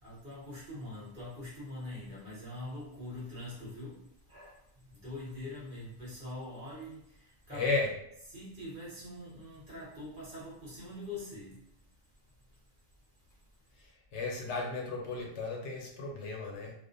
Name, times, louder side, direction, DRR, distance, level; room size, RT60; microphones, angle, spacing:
voice 1, 0.0-4.0 4.3-7.7 8.3-11.6, left 1 dB, 50° right, -7 dB, 1.0 m, -44 dB
voice 2, 7.5-7.9 13.8-16.7, left 3 dB, 75° left, -1 dB, 0.9 m, -34 dB
2.4 x 2.1 x 2.6 m, 0.73 s
omnidirectional pair, 1.2 m